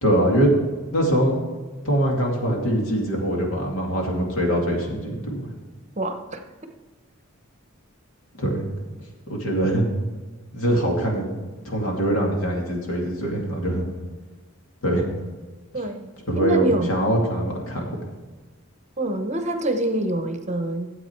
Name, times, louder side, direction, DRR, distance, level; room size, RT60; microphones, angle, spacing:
voice 1, 0.0-0.5 0.9-1.4 1.8-5.5 8.4-8.7 9.3-9.9 10.5-11.3 11.6-13.9 14.8-15.0 16.3-17.8, right 1 dB, 80° left, 0 dB, 2.5 m, -23 dB
voice 2, 6.0-6.4 15.7-16.1 16.4-16.9 19.0-20.9, right 1 dB, 35° right, 7 dB, 0.9 m, -25 dB
12.5 x 7.9 x 4.6 m, 1.3 s
head